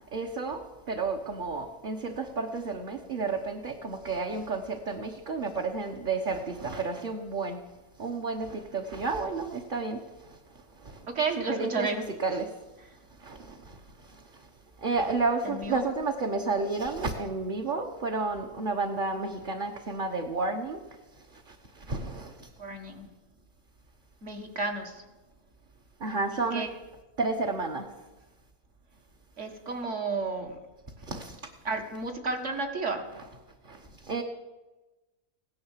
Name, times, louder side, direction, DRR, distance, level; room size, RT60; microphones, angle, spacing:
voice 1, 0.1-0.6 0.9-7.6 8.0-10.0 11.4-12.5 13.2-13.6 14.8-20.8 21.9-22.3 26.0-26.6 27.2-27.8 31.1-31.4 33.7-33.8 34.0-34.2, right 3 dB, 40° right, 2 dB, 1.1 m, -31 dB
voice 2, 11.1-12.0 15.4-15.8 22.6-23.1 24.2-25.0 26.5-26.7 29.4-30.6 31.6-33.1, right 3 dB, 55° right, 4 dB, 2.1 m, -32 dB
16.5 x 10.5 x 7.4 m, 1.1 s
omnidirectional pair, 1.6 m